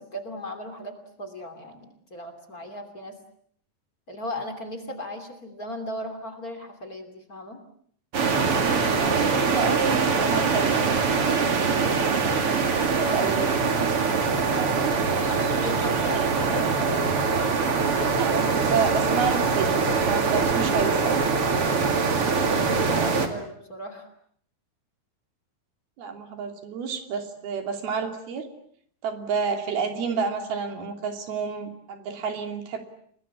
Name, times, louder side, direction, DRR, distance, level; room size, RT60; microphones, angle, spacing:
voice 1, 0.0-3.1 4.1-7.6 12.8-13.5 15.3-17.0 22.4-24.1, equal, 25° left, 6 dB, 3.0 m, -37 dB
sound 1, 8.1-23.3, right 5 dB, 40° right, 3.0 m, -23 dB
voice 2, 9.0-11.9 12.9-13.5 14.6-15.0 18.1-21.2 26.0-28.5 29.0-32.8, right 5 dB, 90° right, 6 dB, 4.8 m, -30 dB
30.0 x 20.5 x 8.4 m, 0.64 s
omnidirectional pair, 4.2 m